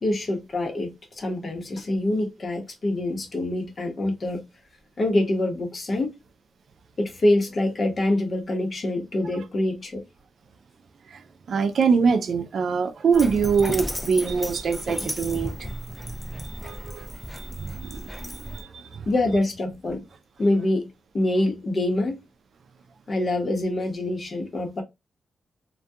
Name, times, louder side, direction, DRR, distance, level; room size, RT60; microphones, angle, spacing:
voice 1, 0.0-4.4 5.0-6.1 7.0-10.0 19.1-20.0 20.4-20.9 21.1-22.2 23.1-24.8, left 1 dB, 45° left, 0.8 m, -25 dB
voice 2, 11.5-19.1, right 5 dB, 65° right, 0.4 m, -25 dB
Dog, 13.1-18.6, equal, 10° left, 0.4 m, -34 dB
2.3 x 2.2 x 2.6 m
wide cardioid pair, 110°, 0 cm